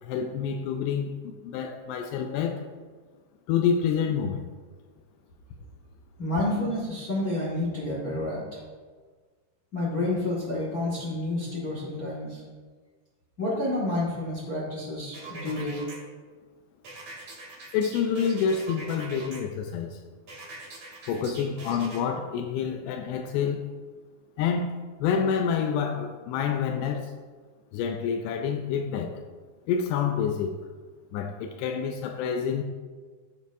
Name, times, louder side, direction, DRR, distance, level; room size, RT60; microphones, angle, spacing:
voice 1, 0.0-2.6 3.5-4.5 17.7-20.0 21.1-23.7 24.4-27.1 27.7-29.1 29.7-30.6 31.1-32.6, left 7 dB, 85° left, 2.4 m, -28 dB
voice 2, 6.2-8.6 9.7-12.4 13.4-15.8, left 1 dB, 60° left, 0.9 m, -29 dB
sound 1, 15.1-16.0 16.8-19.4 20.3-22.0, right 2 dB, 40° right, 3.4 m, -42 dB
14.5 x 7.2 x 2.6 m
omnidirectional pair, 5.2 m